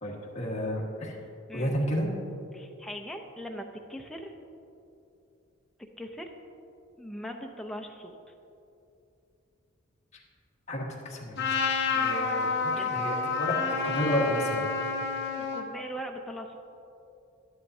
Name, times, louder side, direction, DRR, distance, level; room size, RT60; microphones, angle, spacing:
voice 1, 0.0-1.2 1.5-2.1 10.7-11.6 11.9-14.7, equal, 30° left, -3 dB, 1.5 m, -31 dB
voice 2, 2.5-4.3 6.0-6.3 7.0-8.2 12.7-12.9 15.3-16.6, equal, ahead, 2 dB, 0.6 m, -40 dB
Trumpet, 11.4-15.7, left 4 dB, 50° left, 0.9 m, -29 dB
12.5 x 10.5 x 2.7 m, 2.7 s
head